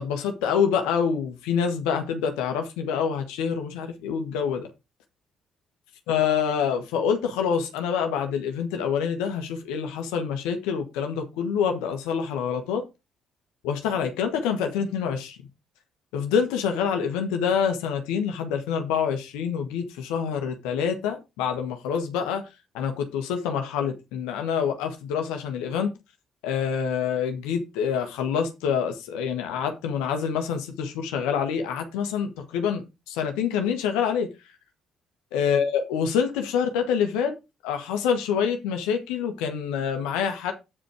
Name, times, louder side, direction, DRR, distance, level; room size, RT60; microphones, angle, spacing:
voice 1, 0.0-4.7 6.1-12.8 13.6-15.4 16.1-22.4 22.7-25.9 26.4-34.3 35.3-37.3 37.6-40.5, left 7 dB, 75° left, 1.4 m, -26 dB
8.6 x 5.2 x 4.9 m
hypercardioid pair, 50°, 0 cm